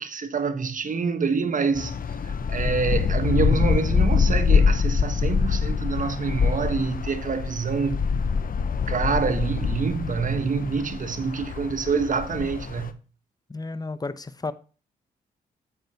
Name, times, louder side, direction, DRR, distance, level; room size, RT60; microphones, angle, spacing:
voice 1, 0.0-1.9 2.2-8.0 8.9-12.9, right 5 dB, 45° right, 1.4 m, -26 dB
sound 1, 1.8-12.9, left 5 dB, 50° left, 0.9 m, -24 dB
voice 2, 13.5-14.5, left 3 dB, 20° left, 0.9 m, -32 dB
8.8 x 7.9 x 2.9 m
hypercardioid pair, 45°, 18 cm